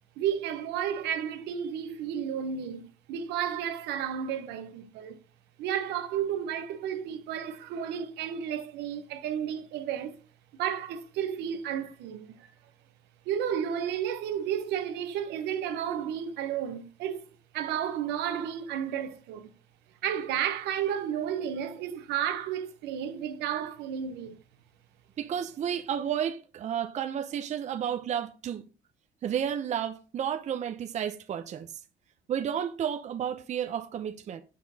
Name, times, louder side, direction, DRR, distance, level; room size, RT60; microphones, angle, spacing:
voice 1, 0.2-5.2 5.6-10.2 10.5-12.5 13.3-17.2 17.5-19.5 20.0-24.4, right 9 dB, 85° right, 0.9 m, -32 dB
voice 2, 25.2-28.6 29.2-31.7 32.3-34.4, right 9 dB, 45° right, 0.6 m, -32 dB
6.5 x 5.9 x 2.8 m
cardioid pair, 110°, 17 cm